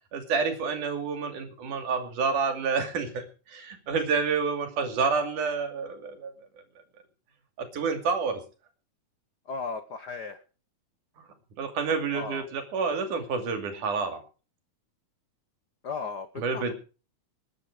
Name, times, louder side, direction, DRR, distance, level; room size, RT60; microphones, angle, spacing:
voice 1, 0.1-6.3 7.6-8.4 11.2-11.3 11.6-14.2 16.4-16.7, right 5 dB, 85° right, 6 dB, 4.0 m, -29 dB
voice 2, 9.5-10.4 12.1-12.5 15.8-16.3 16.5-16.7, left 5 dB, 65° left, 9 dB, 1.0 m, -35 dB
20.5 x 10.0 x 5.0 m, 0.36 s
omnidirectional pair, 3.5 m